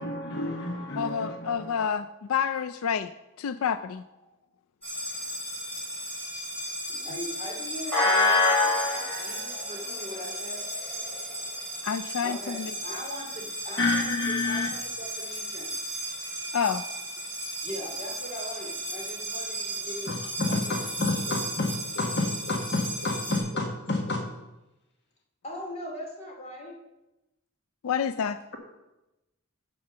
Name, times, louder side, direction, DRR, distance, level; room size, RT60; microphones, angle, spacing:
voice 1, 0.0-1.8 13.8-14.7 20.1-24.2, left 2 dB, 55° left, 2 dB, 1.4 m, -29 dB
voice 2, 1.0-3.1 3.4-4.0 11.8-12.7 16.5-16.8 27.8-28.4, left 7 dB, 85° left, 12 dB, 0.4 m, -28 dB
sound 1, 4.8-23.4, left 1 dB, 5° left, 3.6 m, -31 dB
voice 3, 6.9-10.6 12.2-15.8 17.6-20.1 20.5-20.8 21.3-21.4 25.4-26.7, left 1 dB, 30° left, -1 dB, 2.6 m, -40 dB
9.3 x 7.0 x 6.6 m, 0.98 s
head